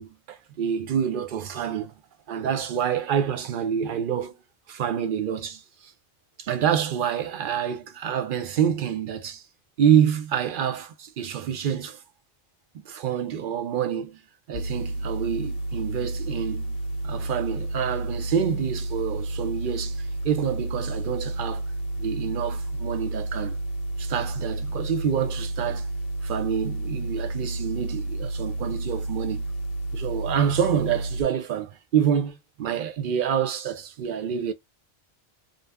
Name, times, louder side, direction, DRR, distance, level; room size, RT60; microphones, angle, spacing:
voice 1, 0.0-1.9 2.3-4.3 4.7-5.6 6.4-9.4 9.8-12.0 12.7-14.2 14.5-16.7 17.0-21.6 22.0-23.6 24.0-25.8 26.2-29.4 29.9-34.5, right 8 dB, 60° right, 0.7 m, -27 dB
sound 1, 14.5-31.2, right 2 dB, 70° left, 0.8 m, -31 dB
2.5 x 2.0 x 3.3 m
omnidirectional pair, 1.0 m